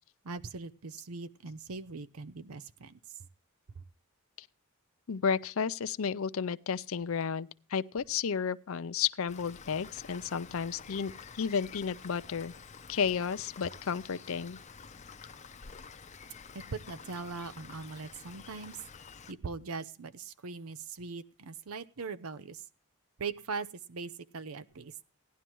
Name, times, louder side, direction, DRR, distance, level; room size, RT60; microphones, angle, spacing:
voice 1, 0.2-3.0 3.8-3.9 16.5-18.8 19.3-22.6 23.2-25.0, right 4 dB, 80° right, 0.7 m, -41 dB
voice 2, 5.1-12.5 12.9-14.6, left 6 dB, 70° left, 0.5 m, -32 dB
Rain, 9.3-19.3, left 5 dB, 30° left, 0.6 m, -50 dB
17.0 x 11.0 x 3.0 m
head